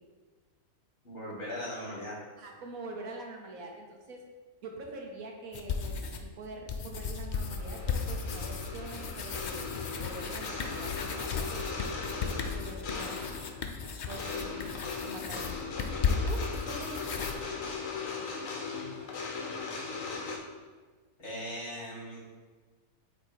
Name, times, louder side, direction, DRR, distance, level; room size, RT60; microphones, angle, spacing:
voice 1, 1.0-2.2 18.7-18.9 21.2-22.2, equal, 50° left, -6 dB, 2.5 m, -39 dB
voice 2, 2.4-4.2 4.6-5.9 6.2-11.9 12.4-13.2 14.1-15.7 16.1-17.0, right 2 dB, 75° right, 1 dB, 1.3 m, -44 dB
sound 1, 5.5-6.3 6.7-17.3, left 5 dB, 90° left, 0.4 m, -35 dB
sound 2, 7.3-20.4, left 4 dB, 70° left, 1.2 m, -39 dB
8.2 x 3.0 x 4.6 m, 1.4 s
omnidirectional pair, 1.5 m